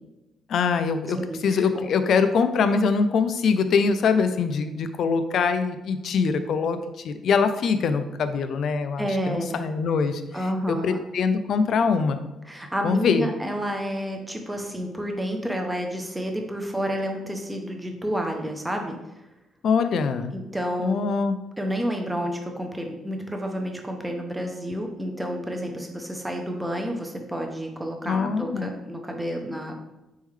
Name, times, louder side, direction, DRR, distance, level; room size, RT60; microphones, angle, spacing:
voice 1, 0.5-1.2 1.4-6.8 7.0-10.2 10.7-12.2 12.8-13.3 19.6-20.3 20.8-21.4 28.1-28.7, left 5 dB, 55° left, 10 dB, 0.3 m, -23 dB
voice 2, 1.1-1.9 9.0-9.6 10.3-11.0 12.4-19.0 20.3-21.0 21.6-29.8, equal, 5° right, 2 dB, 0.5 m, -30 dB
4.2 x 3.6 x 3.2 m, 0.98 s
cardioid pair, 150°, 0 cm